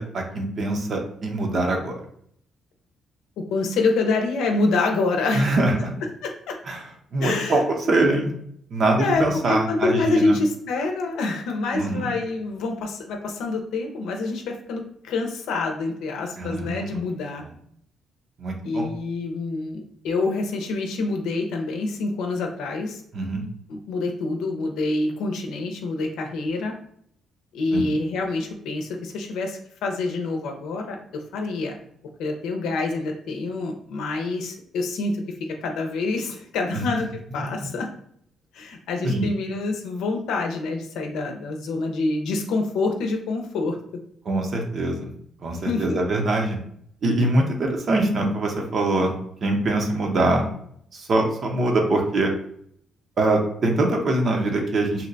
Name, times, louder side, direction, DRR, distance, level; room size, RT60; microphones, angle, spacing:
voice 1, 0.0-1.9 5.3-5.9 6.7-6.8 7.1-8.4 8.7-10.4 11.7-12.1 16.4-17.0 17.4-17.5 18.4-18.9 23.1-23.4 27.7-27.9 36.7-36.9 37.4-37.5 39.0-39.3 44.3-45.1 45.4-46.6 47.0-49.1 49.4-50.5 50.9-52.3 53.2-55.1, right 2 dB, 50° right, 2 dB, 0.8 m, -23 dB
voice 2, 3.5-5.6 6.2-6.5 7.2-7.6 9.0-17.4 18.6-23.0 23.7-26.7 27.5-31.8 32.2-35.2 35.6-37.1 37.3-37.9 38.5-43.8 45.6-46.0, left 3 dB, 85° left, 3 dB, 0.6 m, -26 dB
2.8 x 2.2 x 3.9 m, 0.67 s
cardioid pair, 90°, 0 cm